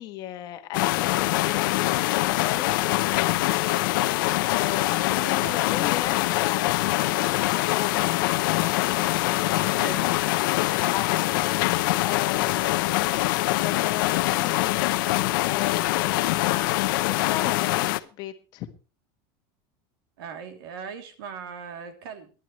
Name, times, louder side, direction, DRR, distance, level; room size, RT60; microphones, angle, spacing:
voice 1, 0.0-3.5 4.2-8.2 10.4-16.7 17.0-18.7, left 13 dB, 35° left, 8 dB, 1.4 m, -36 dB
sound 1, 0.7-18.0, left 18 dB, 65° left, 0.7 m, -24 dB
voice 2, 5.2-5.6 9.7-10.1 20.2-22.3, right 6 dB, 80° right, 6 dB, 3.0 m, -39 dB
23.0 x 11.0 x 3.1 m, 0.35 s
supercardioid pair, 180°, 12 cm